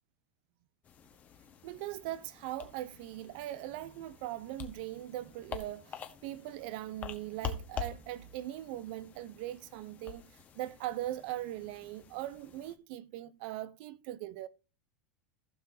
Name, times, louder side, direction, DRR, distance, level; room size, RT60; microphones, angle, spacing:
sound 1, 0.8-12.8, left 7 dB, 30° left, 1.4 m, -46 dB
voice 1, 1.6-14.5, right 14 dB, 60° right, 0.8 m, -40 dB
15.5 x 6.0 x 2.8 m
supercardioid pair, 125°, 5 cm